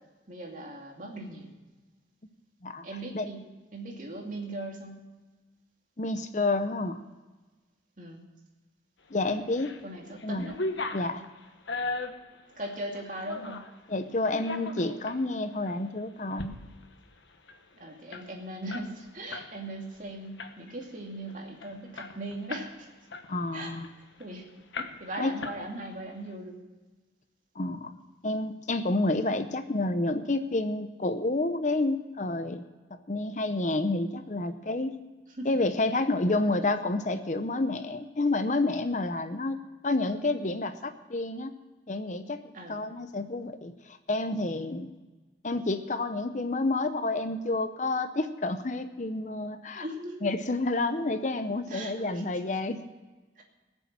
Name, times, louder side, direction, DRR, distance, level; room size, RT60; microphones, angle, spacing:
voice 1, 0.3-1.5 2.8-3.4 3.7-5.0 8.0-8.2 9.8-10.5 12.6-13.6 17.8-22.9 23.5-23.7 24.2-24.5 25.0-26.6 35.4-35.6 36.3-36.4 42.5-42.8 49.7-50.3 51.7-52.4 53.4-53.5, right 1 dB, 45° right, 0 dB, 2.5 m, -39 dB
voice 2, 6.0-7.0 9.1-9.7 10.2-10.5 10.9-11.2 13.9-16.6 23.3-23.9 24.8-24.9 25.2-25.3 27.6-27.9 28.2-32.6 32.9-34.9 35.4-39.6 39.8-41.5 41.9-44.9 45.4-49.9 50.2-52.8, left 2 dB, 40° left, 9 dB, 0.7 m, -29 dB
sound 1, 9.3-9.8 10.2-13.7 14.2-15.2 15.7-15.8 16.2-16.5 16.8-16.9 17.2-19.5 19.8-20.0 20.4-20.8 21.3-21.4 21.6-22.7 23.1-24.3 24.7-25.1 25.4-26.0, left 3 dB, 85° left, 1.2 m, -37 dB
20.0 x 7.2 x 7.5 m, 1.3 s
head